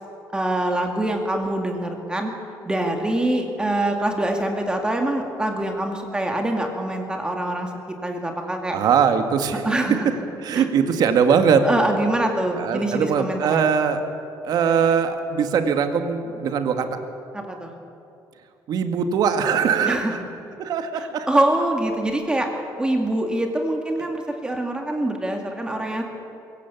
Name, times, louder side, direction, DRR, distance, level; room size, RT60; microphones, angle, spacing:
voice 1, 0.3-2.3 2.7-8.8 9.7-10.1 10.5-10.7 11.6-13.7 17.3-17.7 19.8-20.1 21.3-26.0, right 1 dB, 10° right, 3 dB, 2.3 m, -24 dB
voice 2, 8.7-9.7 10.4-11.6 12.5-14.0 14.4-16.9 18.7-20.2 20.6-21.3, right 7 dB, 60° right, 7 dB, 2.0 m, -21 dB
23.0 x 16.5 x 8.4 m, 2.7 s
cardioid pair, 135°, 8 cm